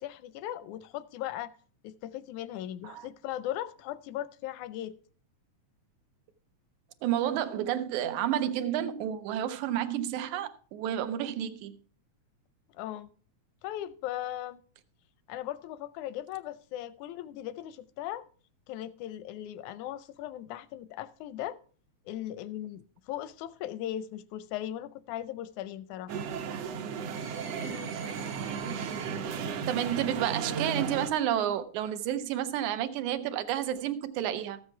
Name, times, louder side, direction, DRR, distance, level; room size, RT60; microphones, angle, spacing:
voice 1, 0.0-1.5 1.8-5.0 12.7-13.1 13.6-14.6 15.3-18.3 18.7-21.6 22.1-26.2, left 12 dB, 85° left, 2.0 m, -38 dB
voice 2, 7.0-11.8 29.7-34.6, right 11 dB, 85° right, 2.2 m, -30 dB
sound 1, 26.1-31.1, right 6 dB, 65° right, 1.9 m, -34 dB
13.5 x 7.9 x 4.5 m
omnidirectional pair, 3.3 m